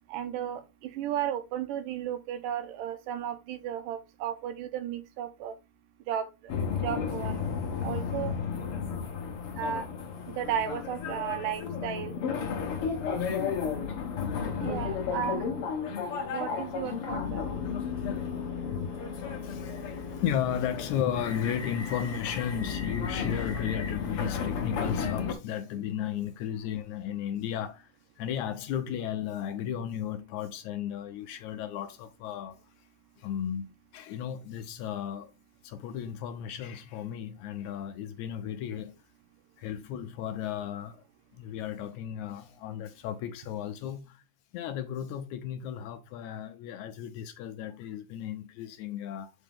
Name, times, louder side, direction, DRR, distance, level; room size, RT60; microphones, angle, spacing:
voice 1, 0.1-5.6 6.1-6.5 6.8-7.4 7.8-8.4 9.6-9.9 10.3-12.2 14.6-15.5 16.2-17.6, right 10 dB, 85° right, 2.4 m, -34 dB
sound 1, 6.5-25.3, left 6 dB, 60° left, 1.7 m, -33 dB
voice 2, 19.4-27.9 28.2-32.6 33.2-35.3 35.6-39.0 39.6-41.0 41.3-44.2 44.5-49.3, left 9 dB, 80° left, 1.8 m, -35 dB
6.6 x 5.0 x 3.4 m
omnidirectional pair, 3.7 m